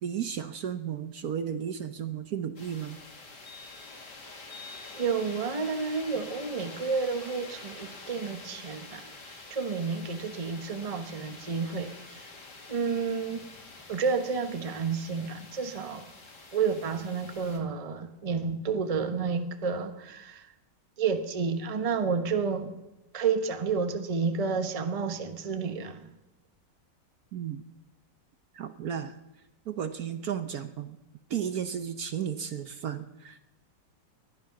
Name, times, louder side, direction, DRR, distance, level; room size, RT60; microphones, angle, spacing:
voice 1, 0.0-3.0 27.3-27.7 28.5-29.2 29.7-31.0 31.3-33.4, right 8 dB, 60° right, 9 dB, 1.2 m, -34 dB
sound 1, 2.6-17.6, left 3 dB, 70° left, 2.8 m, -47 dB
voice 2, 4.9-12.3 12.7-13.5 13.9-16.1 16.5-20.5 21.0-22.7 23.1-26.1, right 5 dB, 25° right, 8 dB, 1.0 m, -30 dB
20.0 x 12.5 x 6.0 m, 0.95 s
omnidirectional pair, 1.9 m